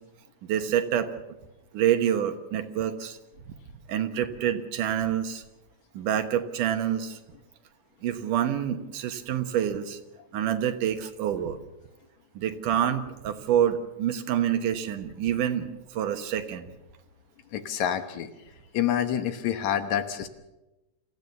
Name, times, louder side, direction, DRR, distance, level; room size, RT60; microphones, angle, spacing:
voice 1, 0.4-1.1 1.7-3.2 3.9-5.4 5.9-7.2 8.0-10.0 10.3-11.6 12.4-16.7, right 10 dB, 85° right, 8 dB, 2.8 m, -27 dB
voice 2, 17.5-18.3 18.7-20.3, left 10 dB, 70° left, 9 dB, 2.4 m, -27 dB
27.0 x 15.0 x 6.9 m, 0.99 s
omnidirectional pair, 3.6 m